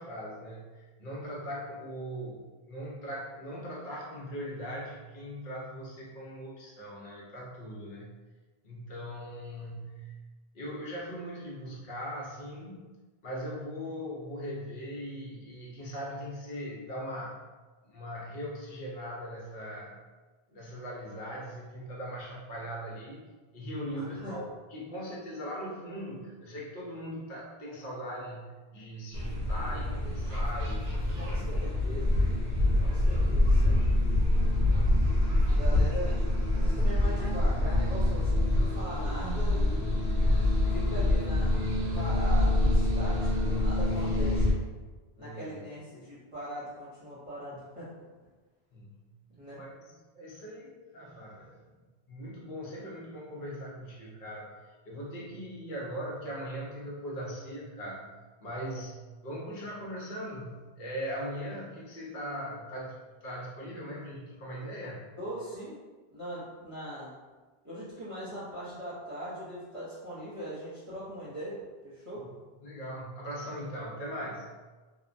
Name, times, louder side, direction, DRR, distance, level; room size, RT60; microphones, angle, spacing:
voice 1, 0.0-8.1 8.6-10.2 10.5-12.8 13.2-17.4 17.8-20.0 20.5-23.3 23.5-31.4 33.1-33.3 33.8-33.9 45.2-45.6 48.7-49.1 49.5-51.6 52.1-54.6 54.9-63.0 63.2-65.1 72.1-72.3 72.6-74.5, equal, 55° left, -4 dB, 0.8 m, -40 dB
voice 2, 23.9-24.3 31.2-32.3 32.8-33.9 34.6-34.9 35.5-36.1 36.5-39.6 40.7-41.6 41.9-44.6 45.2-47.9 49.3-49.6 65.2-65.8 66.1-67.2 67.6-72.3, equal, 35° right, -13 dB, 0.7 m, -40 dB
sound 1, 29.1-44.5, left 1 dB, 75° right, 0.9 m, -26 dB
2.8 x 2.1 x 2.5 m, 1.3 s
omnidirectional pair, 1.1 m